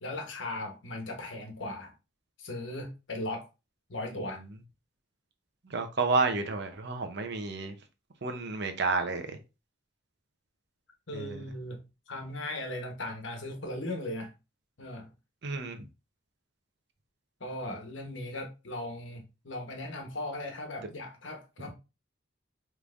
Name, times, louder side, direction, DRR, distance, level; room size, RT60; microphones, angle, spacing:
voice 1, 0.0-1.9 2.4-3.5 3.9-4.4 11.1-14.3 14.8-15.1 17.4-21.7, left 1 dB, 65° left, 1.1 m, -38 dB
voice 2, 5.7-7.7 8.2-9.2 11.1-11.4 15.4-15.8, right 3 dB, 55° right, 0.8 m, -30 dB
5.3 x 3.3 x 2.5 m
head